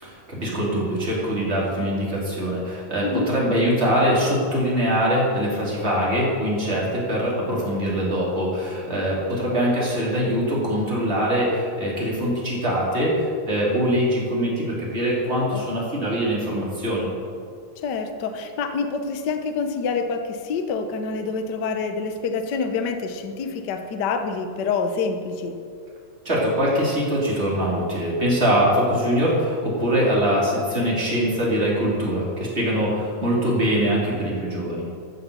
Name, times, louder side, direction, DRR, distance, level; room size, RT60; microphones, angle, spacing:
voice 1, 0.0-17.1 26.3-34.9, equal, 20° right, -5 dB, 3.5 m, -23 dB
voice 2, 17.8-25.6, left 5 dB, 80° left, 6 dB, 0.9 m, -27 dB
14.0 x 7.0 x 7.1 m, 2.3 s
omnidirectional pair, 3.4 m